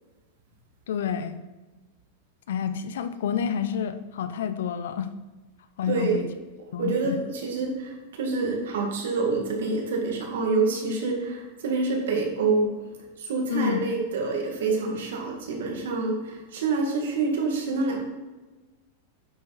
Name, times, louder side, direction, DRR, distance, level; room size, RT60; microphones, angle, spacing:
voice 1, 0.9-1.4 2.5-5.1 5.8-6.3 6.7-7.2 13.5-13.8, left 8 dB, 85° left, 11 dB, 0.6 m, -29 dB
voice 2, 5.9-6.3 6.8-18.0, right 3 dB, 85° right, 1 dB, 2.0 m, -27 dB
9.0 x 4.9 x 4.1 m, 1.2 s
supercardioid pair, 170°, 0 cm